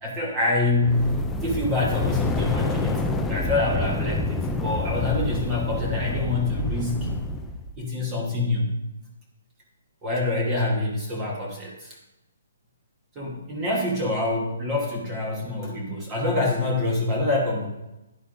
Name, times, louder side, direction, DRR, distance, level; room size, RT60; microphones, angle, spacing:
voice 1, 0.0-1.2 1.4-7.1 7.8-8.7 10.0-12.0 13.1-17.7, left 2 dB, 10° right, -2 dB, 1.1 m, -26 dB
sound 1, 0.7-7.7, left 2 dB, 5° left, 0.3 m, -28 dB
10.5 x 10.0 x 2.5 m, 0.95 s
hypercardioid pair, 180°, 0 cm